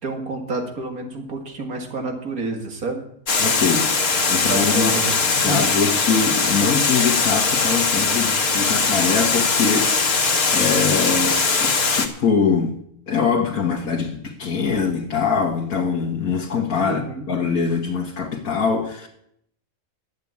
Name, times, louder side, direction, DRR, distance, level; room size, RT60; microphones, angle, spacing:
voice 1, 0.0-3.1 4.3-5.7 16.8-17.3, right 3 dB, 75° right, 4 dB, 2.5 m, -29 dB
Water, 3.3-12.1, left 4 dB, 45° left, 1.5 m, -20 dB
voice 2, 3.4-12.8 13.1-19.1, left 5 dB, 75° left, 1 dB, 1.7 m, -23 dB
11.5 x 8.2 x 8.5 m, 0.72 s
omnidirectional pair, 1.5 m